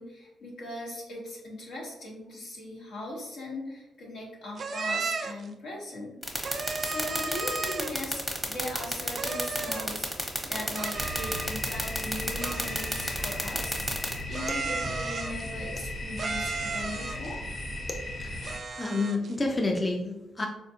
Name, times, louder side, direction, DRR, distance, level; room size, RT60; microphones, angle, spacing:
voice 1, 0.0-6.2 6.5-13.9 14.3-17.5, left 1 dB, 80° left, -4 dB, 1.2 m, -39 dB
sound 1, 4.6-5.5 6.4-8.1 9.1-10.0 10.7-11.7 12.4-13.5 14.3-15.5 16.2-17.3 18.4-19.3, right 4 dB, 55° right, 0.4 m, -34 dB
sound 2, 6.2-14.1, equal, 5° left, 0.9 m, -29 dB
sound 3, 10.9-18.6, left 1 dB, 45° left, 1.1 m, -36 dB
voice 2, 18.2-20.5, left 2 dB, 30° left, 2 dB, 0.4 m, -30 dB
4.0 x 2.2 x 2.8 m, 0.96 s
cardioid pair, 65°, 0 cm